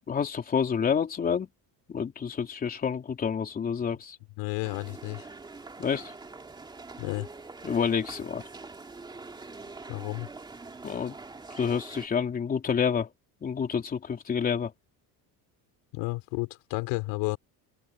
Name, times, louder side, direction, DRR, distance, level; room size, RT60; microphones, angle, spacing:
voice 1, 0.1-1.5 1.9-4.2 5.8-6.1 7.6-8.4 10.8-11.2 11.6-13.1 13.4-14.7, left 7 dB, 20° left, 3.5 m, -28 dB
voice 2, 4.4-5.3 7.0-7.3 9.9-10.3 15.9-17.4, left 23 dB, 85° left, 3.9 m, -32 dB
sound 1, 4.6-12.1, right 3 dB, 10° right, 2.7 m, -44 dB
open air
cardioid pair, 175°, 39 cm